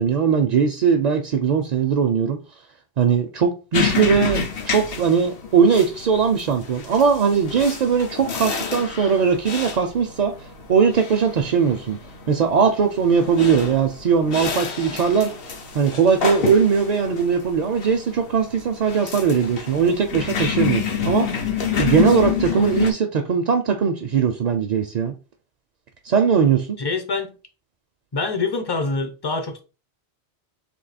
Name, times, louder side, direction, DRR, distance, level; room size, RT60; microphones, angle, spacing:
voice 1, 0.0-2.4 3.0-10.3 10.7-12.0 12.3-15.3 15.7-21.4 21.8-25.1 26.0-26.7, right 6 dB, 55° right, 0.5 m, -20 dB
sound 1, 3.7-22.9, left 6 dB, 65° left, 0.9 m, -28 dB
voice 2, 26.8-27.4 28.1-29.6, left 3 dB, 30° left, 0.5 m, -25 dB
3.5 x 2.8 x 4.0 m
omnidirectional pair, 1.1 m